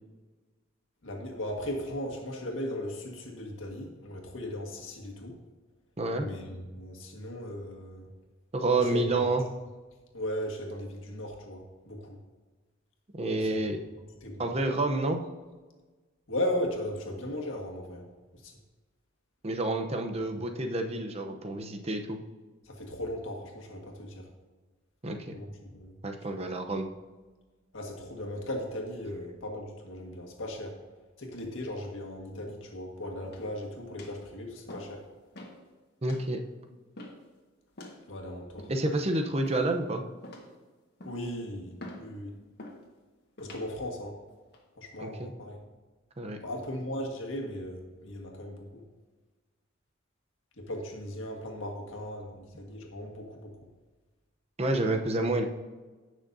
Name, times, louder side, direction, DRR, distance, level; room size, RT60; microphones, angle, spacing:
voice 1, 1.0-5.4 6.2-8.1 8.7-9.2 10.1-12.2 13.4-13.6 14.2-14.5 16.3-18.1 18.3-18.5 20.2-20.3 22.7-24.3 25.3-25.9 26.4-26.5 27.7-30.8 31.2-35.1 38.1-38.7 41.0-42.4 43.4-44.2 44.8-45.6 46.4-48.8 50.6-53.7, left 1 dB, 80° left, 1 dB, 1.8 m, -37 dB
voice 2, 6.0-6.3 8.5-9.5 13.1-13.8 14.4-15.2 19.4-22.2 25.0-25.3 26.0-26.9 36.0-36.4 38.7-40.0 45.0-45.3 46.2-46.4 54.6-55.5, right 2 dB, 30° right, 4 dB, 0.8 m, -29 dB
sound 1, 33.2-33.6 34.0-34.2 34.7-35.0 35.3-35.6 36.1-36.3 37.0-37.3 37.8-38.0 38.6-39.0 39.5-39.8 40.2-40.6 41.0-41.3 41.8-42.1 42.6-42.8 43.4-43.7 44.3-44.6, left 1 dB, 55° left, 1.5 m, -46 dB
16.5 x 6.3 x 2.7 m, 1.3 s
head